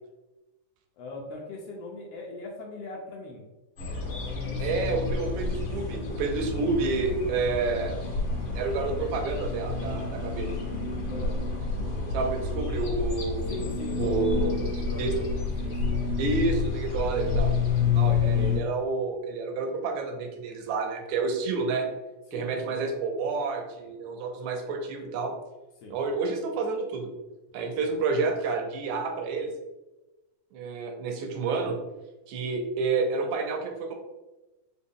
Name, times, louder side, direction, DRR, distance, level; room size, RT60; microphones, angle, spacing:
voice 1, 1.0-3.5 3.9-4.6 11.1-11.4 13.5-16.0 22.3-22.8 25.8-26.0, left 3 dB, 85° left, -1 dB, 1.3 m, -40 dB
sound 1, 3.8-18.6, left 4 dB, 50° left, 1.8 m, -29 dB
voice 2, 4.6-8.0 8.6-10.5 12.1-13.6 14.0-14.6 15.0-15.1 16.2-17.5 18.0-21.9 22.3-25.3 25.9-27.1 27.5-29.5 30.5-31.8 32.3-33.9, right 4 dB, 80° right, 4 dB, 1.8 m, -29 dB
sound 2, 5.3-16.1, left 2 dB, 70° left, 1.5 m, -47 dB
5.0 x 2.2 x 3.5 m, 1.0 s
omnidirectional pair, 3.5 m